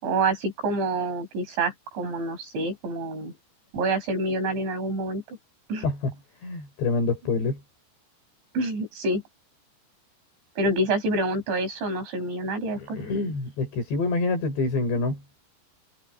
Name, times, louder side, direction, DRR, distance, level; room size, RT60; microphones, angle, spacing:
voice 1, 0.0-3.3 3.7-5.4 5.7-5.9 8.5-9.2 10.6-13.0, right 2 dB, 90° right, 8.6 m, -27 dB
voice 2, 5.8-6.2 6.4-7.6 12.8-15.2, left 3 dB, 75° left, 8.2 m, -26 dB
omnidirectional pair, 5.1 m